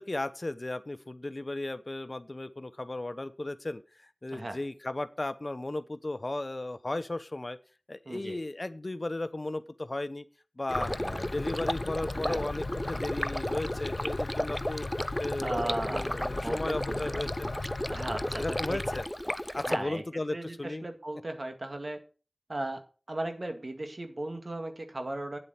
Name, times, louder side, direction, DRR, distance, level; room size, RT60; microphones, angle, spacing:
voice 1, 0.0-7.6 7.9-10.3 10.6-10.9 11.2-14.9 15.2-17.5 18.4-19.1 19.5-20.8, left 2 dB, 50° left, 13 dB, 0.8 m, -35 dB
voice 2, 8.1-8.4 10.9-11.3 12.1-12.5 15.4-16.2 16.4-17.3 17.9-18.8 19.6-20.0 20.3-22.0 22.5-22.8 23.1-25.4, right 1 dB, 65° right, 6 dB, 1.9 m, -37 dB
sound 1, 10.7-19.1, left 3 dB, 85° left, 0.4 m, -38 dB
Stream, 10.7-19.8, equal, 10° left, 0.5 m, -34 dB
9.3 x 7.7 x 5.7 m, 0.36 s
wide cardioid pair, 55°, 0 cm